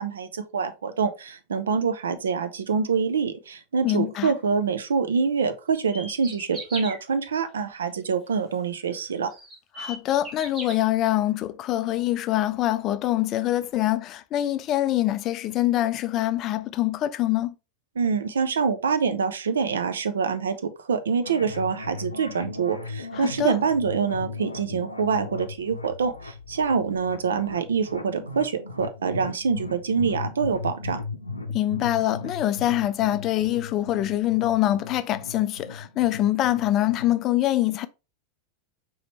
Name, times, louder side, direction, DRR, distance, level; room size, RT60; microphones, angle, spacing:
voice 1, 0.0-9.3 18.0-31.0, right 5 dB, 65° right, 0.6 m, -25 dB
voice 2, 3.8-4.3 9.8-17.5 23.1-23.6 31.5-37.9, left 14 dB, 35° left, 0.4 m, -24 dB
sound 1, 5.7-7.0 8.7-8.8 9.3-10.7, right 1 dB, 25° right, 2.0 m, -37 dB
sound 2, 21.2-37.1, left 3 dB, 80° left, 0.6 m, -37 dB
4.9 x 3.1 x 3.1 m
figure-of-eight pair, 90°, 0 cm